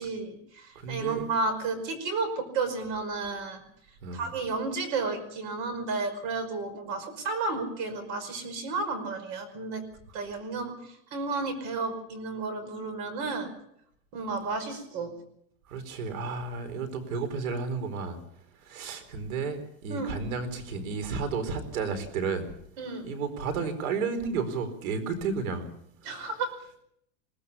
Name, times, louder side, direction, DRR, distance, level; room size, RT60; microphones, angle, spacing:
voice 1, 0.0-3.6 4.1-9.8 10.1-10.7 11.1-13.5 14.1-15.1 19.9-20.1 22.8-23.1 26.0-26.5, right 3 dB, 50° right, 11 dB, 5.3 m, -32 dB
voice 2, 0.7-1.2 4.0-4.2 15.7-18.2 18.6-22.5 23.0-25.7 26.0-26.3, right 5 dB, 85° right, 10 dB, 4.6 m, -32 dB
21.5 x 18.0 x 7.1 m, 0.73 s
supercardioid pair, 160°, 41 cm